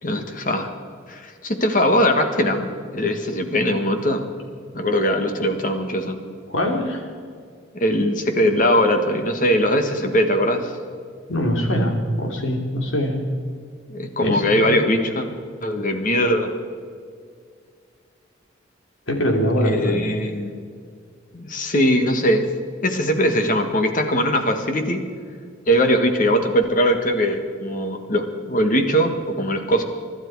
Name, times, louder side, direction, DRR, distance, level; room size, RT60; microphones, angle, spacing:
voice 1, 0.0-0.7 1.1-4.2 4.7-6.2 7.7-10.7 13.9-15.3 15.6-16.5 19.6-20.5 21.3-22.5 22.8-25.0 25.7-29.8, equal, 40° left, 6 dB, 1.6 m, -21 dB
voice 2, 6.5-7.1 11.3-13.2 14.2-14.8 19.1-20.0, equal, 80° left, 2 dB, 3.0 m, -23 dB
25.0 x 12.0 x 4.8 m, 2.1 s
head